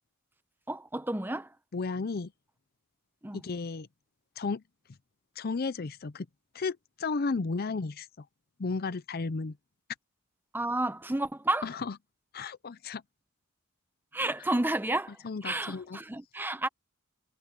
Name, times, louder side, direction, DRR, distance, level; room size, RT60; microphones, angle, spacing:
voice 1, 0.7-1.5 3.2-3.4 10.5-11.7 14.1-16.7, right 2 dB, 10° right, 0.8 m, -31 dB
voice 2, 1.7-2.3 3.3-3.9 4.4-4.6 5.4-6.3 6.5-8.1 8.6-9.6 11.6-11.9 12.3-13.0 15.2-16.0, left 4 dB, 45° left, 0.6 m, -33 dB
head